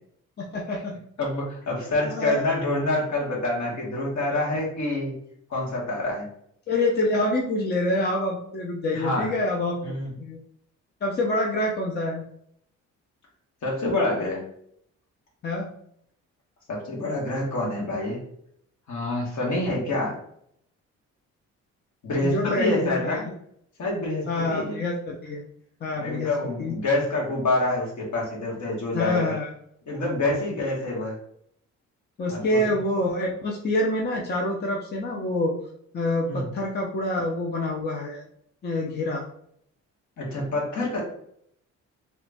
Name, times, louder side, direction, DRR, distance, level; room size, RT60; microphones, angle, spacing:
voice 1, 0.4-1.0 2.0-2.4 6.7-10.4 11.0-12.2 15.4-15.7 22.2-23.3 24.3-25.5 25.8-26.8 28.9-29.5 32.2-35.5 35.9-38.2 38.6-39.2, left 1 dB, 35° left, -1 dB, 0.6 m, -26 dB
voice 2, 1.2-5.2 5.5-6.3 8.9-9.3 9.8-10.1 13.6-14.4 16.7-18.2 18.9-20.2 22.0-23.3 23.8-24.8 25.9-29.3 29.9-31.1 32.3-32.6 36.3-36.5 40.2-41.0, left 2 dB, 70° left, -3 dB, 1.5 m, -27 dB
3.0 x 2.5 x 3.3 m, 0.68 s
cardioid pair, 90°, 30 cm